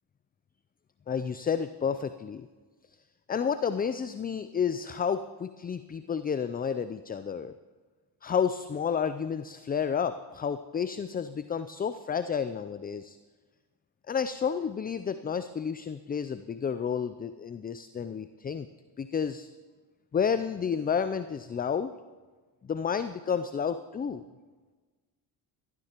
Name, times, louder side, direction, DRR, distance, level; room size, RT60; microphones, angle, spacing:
voice 1, 1.1-2.5 3.3-7.5 8.2-13.2 14.1-18.7 19.0-19.5 20.1-21.9 22.7-24.2, left 7 dB, 20° left, 12 dB, 0.4 m, -31 dB
18.5 x 13.0 x 3.0 m, 1.4 s
hypercardioid pair, 55°, 49 cm